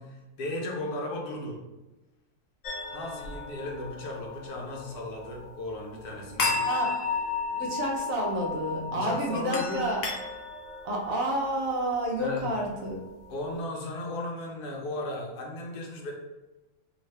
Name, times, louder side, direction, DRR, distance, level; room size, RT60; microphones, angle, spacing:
voice 1, 0.0-1.6 2.9-6.6 8.9-9.9 12.2-12.5 13.3-16.1, left 2 dB, 90° left, 0 dB, 1.3 m, -35 dB
sound 1, 2.6-13.6, left 4 dB, 70° left, 1.0 m, -35 dB
voice 2, 6.6-6.9 7.5-10.0 10.8-13.0, right 1 dB, 65° right, -1 dB, 1.1 m, -29 dB
3.7 x 2.4 x 3.2 m, 1.0 s
omnidirectional pair, 1.6 m